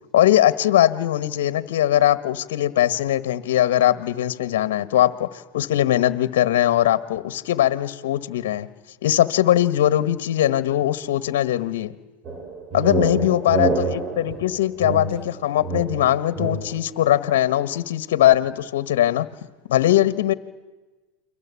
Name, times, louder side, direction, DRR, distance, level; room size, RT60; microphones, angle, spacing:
voice 1, 0.1-8.7 9.0-11.9 12.7-19.3 19.7-20.3, left 12 dB, 75° left, 15 dB, 1.4 m, -20 dB
sound 1, 12.3-16.9, right 3 dB, 35° right, 5.0 m, -27 dB
30.0 x 23.0 x 8.4 m, 1.2 s
hypercardioid pair, 105°, 0 cm